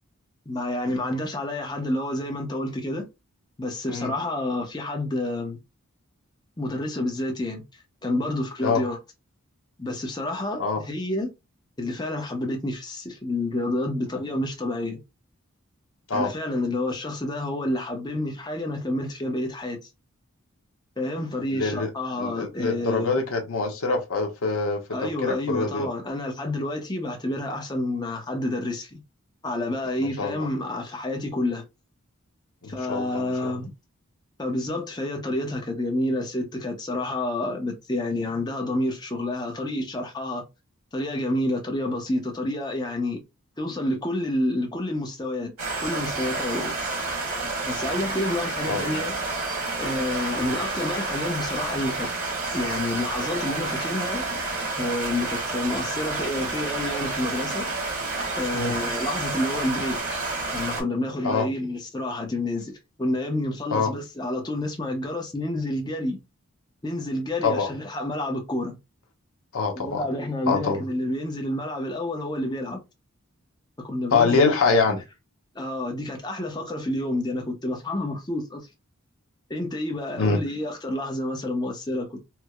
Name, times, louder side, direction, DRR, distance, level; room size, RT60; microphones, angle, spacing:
voice 1, 0.5-3.1 3.6-5.6 6.6-9.0 9.8-11.3 11.8-15.0 16.1-19.9 21.0-23.1 24.9-29.0 29.4-31.6 32.7-33.7 34.4-40.4 40.9-43.2 43.6-45.5 45.8-46.7 47.6-49.2 49.8-52.1 52.5-54.3 54.8-57.6 58.4-60.2 60.5-66.2 66.8-68.8 69.7-72.8 73.8-74.5 75.5-78.7 79.5-82.2, left 1 dB, 20° left, 0.7 m, -29 dB
voice 2, 21.5-21.9 22.2-25.9 30.0-30.5 32.6-33.5 48.7-49.0 58.5-58.8 61.2-61.5 63.7-63.9 67.4-67.7 69.5-70.1 70.5-70.8 74.1-75.0 80.2-80.4, left 4 dB, 75° left, 0.9 m, -25 dB
sound 1, 45.6-60.8, right 3 dB, 85° right, 1.8 m, -29 dB
4.5 x 2.0 x 2.3 m
head